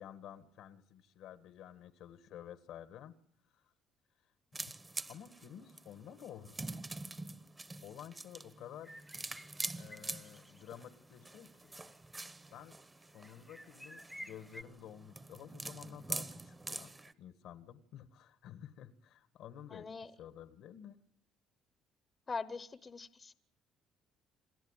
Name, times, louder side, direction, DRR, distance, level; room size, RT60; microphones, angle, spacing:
voice 1, 0.0-3.1 3.5-3.7 5.1-6.8 7.8-8.9 9.7-11.7 12.5-12.8 13.1-16.9 17.2-19.9 20.2-21.0, left 10 dB, 75° left, 11 dB, 1.6 m, -51 dB
sound 1, 4.5-17.1, right 2 dB, 20° right, 1.1 m, -45 dB
sound 2, 8.8-10.7 11.1-11.2 11.7-12.5 13.1-14.6, equal, ahead, 0.9 m, -53 dB
voice 2, 19.7-20.1 22.3-23.3, left 4 dB, 30° left, 14 dB, 0.9 m, -42 dB
27.5 x 14.0 x 9.0 m, 0.70 s
cardioid pair, 105°, 0 cm